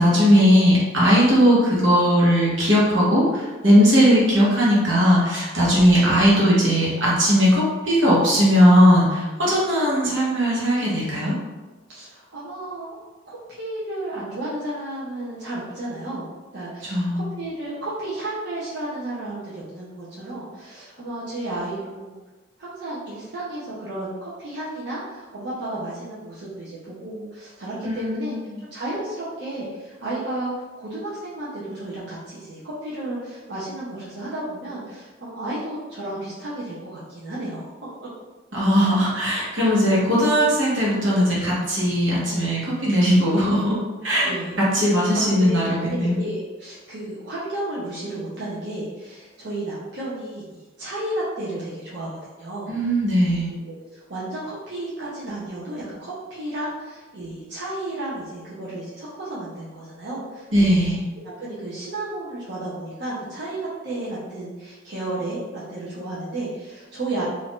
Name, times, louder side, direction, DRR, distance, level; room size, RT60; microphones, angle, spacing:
voice 1, 0.0-11.3 16.8-17.2 27.8-28.3 38.5-43.8 44.0-44.3 44.6-46.1 52.7-53.5 60.5-61.0, equal, 90° right, -6 dB, 1.1 m, -18 dB
voice 2, 11.9-12.9 13.3-16.3 16.5-22.2 22.6-28.4 28.7-30.5 30.8-37.7 38.8-38.9 44.2-44.5 45.1-52.7 53.5-67.2, right 1 dB, 65° right, -8 dB, 0.7 m, -33 dB
2.7 x 2.4 x 3.5 m, 1.2 s
head